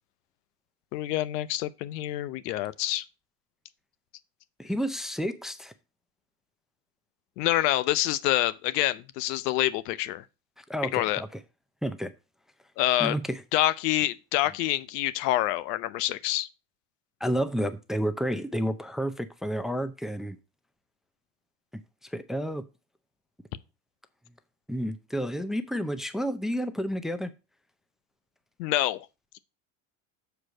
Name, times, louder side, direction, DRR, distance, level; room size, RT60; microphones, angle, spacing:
voice 1, 0.9-3.0 7.4-10.2 10.9-11.2 12.8-13.1 13.5-16.5 28.6-29.1, left 15 dB, 90° left, 0.9 m, -27 dB
voice 2, 4.6-5.7 10.6-11.3 11.8-12.1 13.0-13.4 17.2-20.4 22.0-22.7 24.7-27.3, equal, ahead, 0.5 m, -30 dB
6.8 x 4.8 x 6.4 m
supercardioid pair, 125°, 47 cm